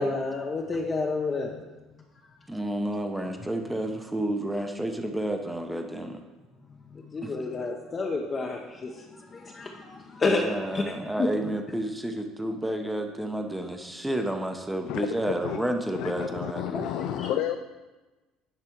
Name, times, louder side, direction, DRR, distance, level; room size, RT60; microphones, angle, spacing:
voice 1, 0.0-1.5 6.9-10.5 10.7-10.8 11.2-11.3 16.7-16.9 17.2-17.3, left 3 dB, 35° left, 0 dB, 0.8 m, -30 dB
voice 2, 2.5-6.2 7.2-7.7 10.2-16.8, right 1 dB, 10° right, 5 dB, 0.8 m, -31 dB
voice 3, 16.0-17.6, left 11 dB, 70° left, 7 dB, 0.3 m, -30 dB
9.8 x 3.4 x 4.5 m, 1.2 s
hypercardioid pair, 75°, 0 cm